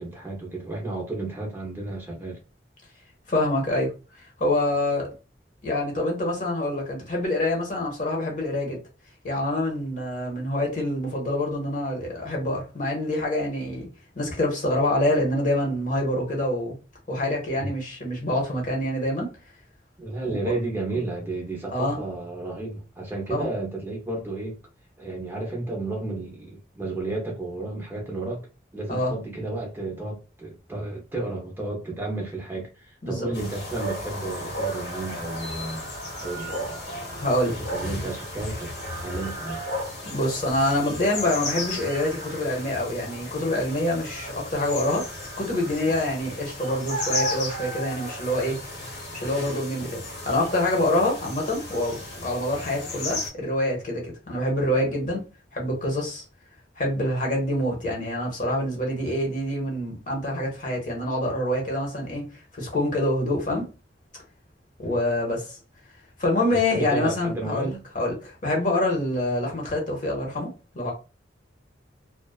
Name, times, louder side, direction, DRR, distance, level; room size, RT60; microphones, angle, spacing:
voice 1, 0.0-2.4 17.6-17.7 20.0-24.6 25.0-28.5 28.7-35.8 36.2-38.7 39.0-39.6 64.8-65.0 66.5-67.8, right 2 dB, 10° right, 0.6 m, -32 dB
voice 2, 3.3-3.9 4.4-5.1 5.6-8.8 9.2-13.9 14.2-16.7 17.1-19.3 21.7-22.0 23.3-23.5 28.9-29.1 33.0-33.2 37.1-37.5 40.0-45.1 45.4-48.6 49.1-50.0 50.3-55.2 55.5-56.2 56.8-62.3 62.5-63.7 64.8-65.6 66.2-70.9, left 1 dB, 45° left, 0.9 m, -26 dB
sound 1, 33.3-53.3, left 1 dB, 65° left, 1.2 m, -34 dB
2.3 x 2.3 x 2.3 m
head